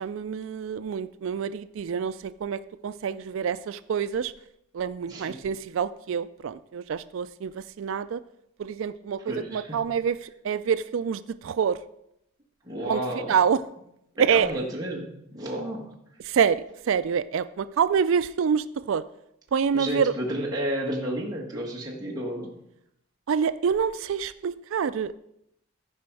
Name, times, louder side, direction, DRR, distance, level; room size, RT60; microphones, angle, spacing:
voice 1, 0.0-4.3 4.7-8.2 8.6-11.8 12.8-13.0 13.3-13.6 14.2-14.5 16.2-19.0 19.5-20.1 23.3-25.2, right 7 dB, 65° right, 13 dB, 0.3 m, -26 dB
voice 2, 5.1-5.4 9.2-9.8 12.6-13.4 14.3-15.9 19.7-22.5, right 1 dB, 20° right, -3 dB, 1.7 m, -31 dB
14.0 x 5.1 x 4.7 m, 0.78 s
head